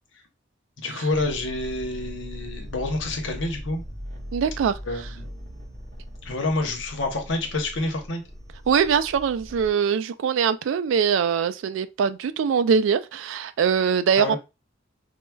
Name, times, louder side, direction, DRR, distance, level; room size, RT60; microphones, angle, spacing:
voice 1, 0.8-3.8 4.9-5.3 6.2-8.2 14.2-14.4, left 2 dB, 70° left, 0.8 m, -28 dB
sound 1, 1.1-9.7, equal, 40° right, 1.4 m, -39 dB
voice 2, 4.3-4.8 8.7-14.4, right 7 dB, 75° right, 0.3 m, -22 dB
4.6 x 2.1 x 2.2 m
head